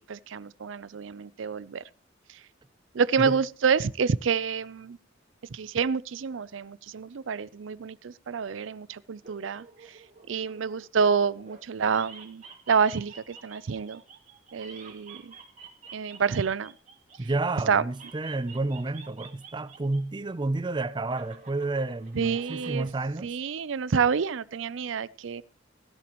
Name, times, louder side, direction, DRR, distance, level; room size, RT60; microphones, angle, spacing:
voice 1, 0.1-1.8 2.9-5.0 5.5-9.6 10.3-14.0 14.5-15.3 15.9-16.7 17.7-17.8 22.2-22.9 23.2-25.4, right 6 dB, 80° right, 0.5 m, -28 dB
sound 1, 9.2-11.6 11.9-17.4 17.9-20.0 20.3-22.9, right 5 dB, 40° right, 2.6 m, -49 dB
voice 2, 17.2-23.3, right 2 dB, 25° right, 0.5 m, -30 dB
17.0 x 12.5 x 3.0 m
head